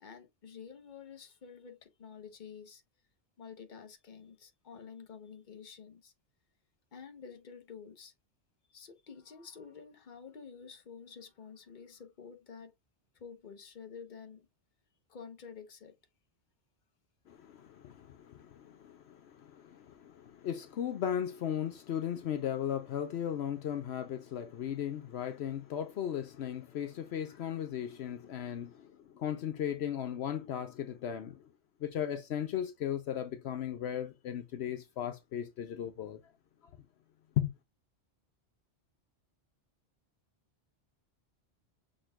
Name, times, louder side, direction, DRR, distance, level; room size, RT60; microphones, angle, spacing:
voice 1, 0.0-2.8 3.4-6.1 6.9-8.1 8.7-12.7 13.1-14.5 15.1-15.9, left 6 dB, 45° left, 1.0 m, -50 dB
voice 2, 17.3-31.5 31.8-36.2 36.6-36.7 37.4-37.5, left 10 dB, 75° left, 0.9 m, -36 dB
6.1 x 3.7 x 2.3 m
omnidirectional pair, 1.1 m